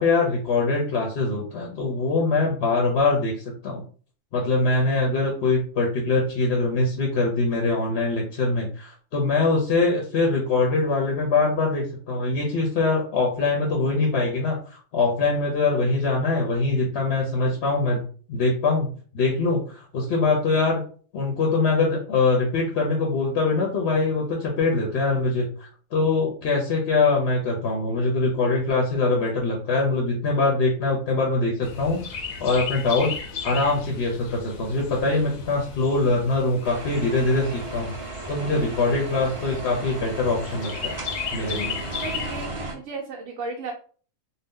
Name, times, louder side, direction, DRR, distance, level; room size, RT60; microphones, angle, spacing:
voice 1, 0.0-3.8 4.3-18.9 19.1-20.8 21.1-32.0 32.4-33.1 33.4-37.9 38.3-40.9 41.3-41.7, left 3 dB, 60° left, -1 dB, 0.9 m, -23 dB
Chirp tweet, 31.6-42.5, left 5 dB, 85° left, 1.0 m, -36 dB
sound 1, 36.6-42.7, right 2 dB, 35° right, 0.5 m, -35 dB
voice 2, 42.0-43.7, right 3 dB, 70° right, 1 dB, 0.9 m, -34 dB
2.6 x 2.2 x 3.5 m, 0.42 s
omnidirectional pair, 1.4 m